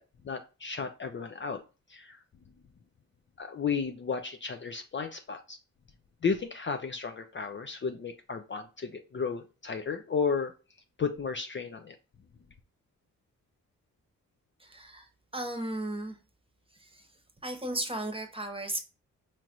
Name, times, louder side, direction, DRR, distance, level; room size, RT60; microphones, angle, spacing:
voice 1, 0.2-1.6 1.9-2.2 3.4-5.6 6.2-10.5 11.0-12.0, left 5 dB, 35° left, 0.5 m, -33 dB
voice 2, 14.6-16.2 16.7-17.1 17.4-18.8, right 1 dB, 15° right, 1.0 m, -35 dB
4.3 x 3.1 x 2.5 m
supercardioid pair, 45°, 33 cm